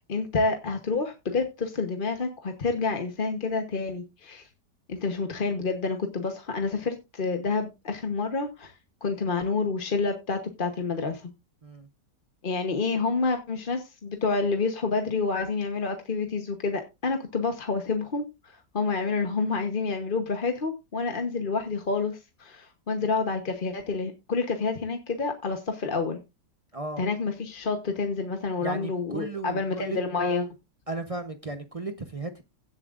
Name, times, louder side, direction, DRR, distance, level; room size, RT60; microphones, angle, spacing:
voice 1, 0.1-4.5 4.9-8.7 9.0-11.3 12.4-18.3 18.7-26.2 27.0-30.5, left 4 dB, 35° left, 1.1 m, -28 dB
voice 2, 26.7-27.0 28.6-30.0 30.9-32.4, right 2 dB, 30° right, 0.7 m, -35 dB
17.0 x 7.4 x 2.5 m
omnidirectional pair, 1.8 m